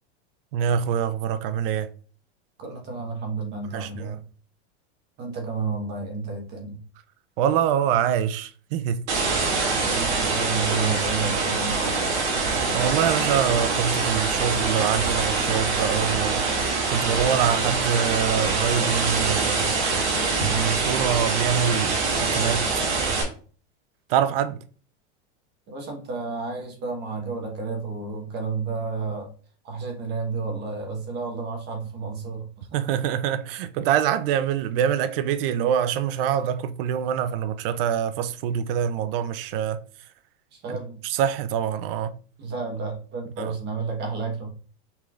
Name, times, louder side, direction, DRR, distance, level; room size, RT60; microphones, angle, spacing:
voice 1, 0.5-1.9 3.7-4.2 7.4-9.0 12.7-16.4 16.9-19.6 20.5-22.8 24.1-24.6 32.7-39.8 40.7-40.8 41.0-42.1 43.4-43.5, right 9 dB, 55° right, 0.5 m, -25 dB
voice 2, 2.6-4.2 5.2-6.8 9.7-12.0 24.2-24.3 25.7-29.3 29.6-32.8 40.5-41.0 42.4-44.5, right 4 dB, 30° right, 1.1 m, -31 dB
sound 1, 9.1-23.2, right 4 dB, 75° right, 2.2 m, -24 dB
5.6 x 3.1 x 2.4 m
supercardioid pair, 150°, 34 cm